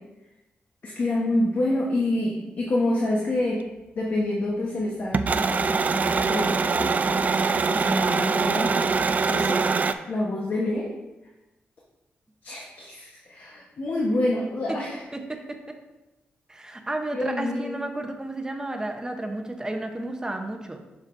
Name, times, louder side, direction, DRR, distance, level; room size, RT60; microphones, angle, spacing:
voice 1, 0.8-3.6 3.9-9.6 10.1-10.9 12.4-15.0 17.1-17.8, left 1 dB, 55° left, -3 dB, 1.1 m, -27 dB
sound 1, 5.1-9.9, right 4 dB, 40° right, 0.3 m, -23 dB
voice 2, 14.7-15.8 16.5-20.8, right 2 dB, 15° right, 4 dB, 0.8 m, -32 dB
7.2 x 5.7 x 2.6 m, 1.0 s
cardioid pair, 90°, 4 cm